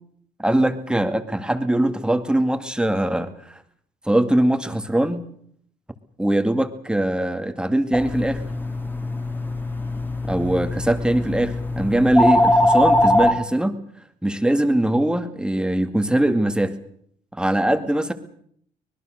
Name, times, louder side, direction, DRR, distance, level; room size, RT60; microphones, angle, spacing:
voice 1, 0.4-3.3 4.1-5.2 6.2-8.4 10.2-13.8 14.2-16.8 17.3-18.1, right 1 dB, 5° right, 8 dB, 2.1 m, -21 dB
sound 1, 7.9-13.3, left 1 dB, 10° left, 2.8 m, -21 dB
24.5 x 20.5 x 6.5 m, 0.66 s
cardioid pair, 110°, 17 cm